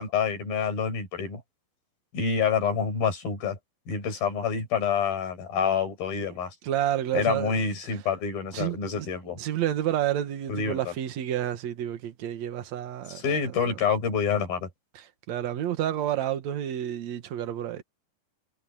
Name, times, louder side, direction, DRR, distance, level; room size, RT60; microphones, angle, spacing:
voice 1, 0.0-1.4 2.1-3.6 3.9-6.5 7.1-9.4 10.5-10.9 13.1-14.7, left 6 dB, 80° left, 7.9 m, -27 dB
voice 2, 6.6-7.6 8.5-9.1 9.3-13.4 13.6-13.8 15.0-17.8, right 11 dB, 55° right, 2.5 m, -30 dB
omnidirectional pair, 4.2 m